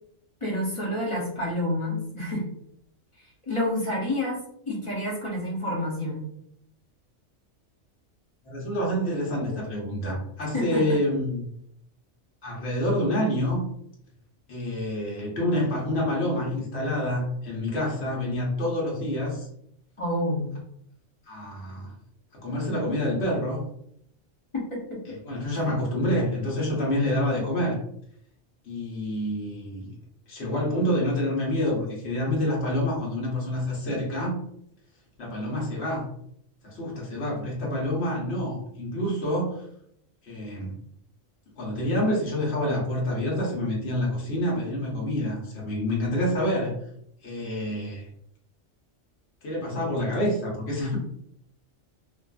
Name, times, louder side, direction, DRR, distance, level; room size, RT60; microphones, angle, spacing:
voice 1, 0.4-2.4 3.5-4.4 4.7-6.3 10.5-11.0 20.0-20.5, left 1 dB, 35° left, -6 dB, 0.5 m, -28 dB
voice 2, 8.4-11.4 12.4-13.7 14.5-19.5 21.3-21.9 22.4-23.7 25.1-27.8 28.6-29.9 30.3-34.4 35.2-36.1 36.6-39.6 40.2-40.8 41.6-46.8 47.2-48.1 49.4-51.0, left 1 dB, 55° left, -4 dB, 1.1 m, -27 dB
2.5 x 2.4 x 2.3 m, 0.72 s
omnidirectional pair, 1.4 m